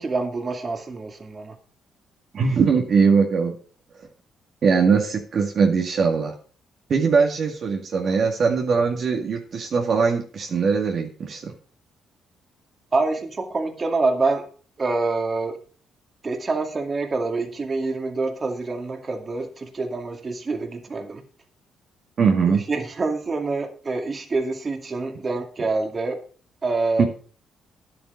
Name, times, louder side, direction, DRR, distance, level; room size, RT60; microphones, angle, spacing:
voice 1, 0.0-1.6 8.1-8.2 12.9-14.5 14.8-15.6 16.2-21.2 22.5-26.2 26.6-27.1, right 3 dB, 35° right, 5 dB, 2.2 m, -26 dB
voice 2, 2.3-3.5 4.6-6.3 6.9-11.5 22.2-22.7 27.0-27.1, right 5 dB, 55° right, 2 dB, 1.9 m, -21 dB
10.5 x 8.7 x 5.2 m, 0.40 s
cardioid pair, 90°, 0 cm